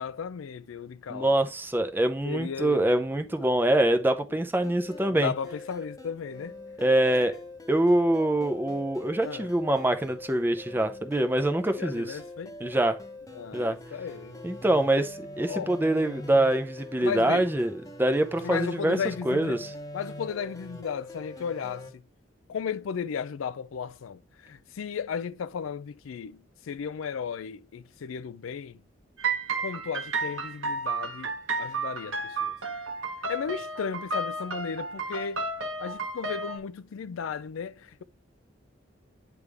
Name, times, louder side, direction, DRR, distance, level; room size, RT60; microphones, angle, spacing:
voice 1, 0.0-1.4 2.2-2.9 4.3-4.4 5.1-6.6 7.2-7.3 9.2-9.5 11.8-12.5 13.3-14.4 15.5-15.7 17.0-17.5 18.4-19.6 19.9-21.9 22.5-28.8 29.6-31.3 31.6-32.5 33.3-35.4 35.8-38.0, left 6 dB, 90° left, 0.4 m, -35 dB
voice 2, 1.1-5.3 6.8-7.3 7.7-12.2 12.6-13.0 13.5-13.8 14.4-19.0 19.2-19.7, right 1 dB, 10° right, 0.6 m, -25 dB
sound 1, 4.6-21.9, left 1 dB, 20° left, 1.0 m, -43 dB
sound 2, 29.2-36.6, right 3 dB, 85° right, 1.2 m, -32 dB
9.6 x 3.5 x 3.4 m
head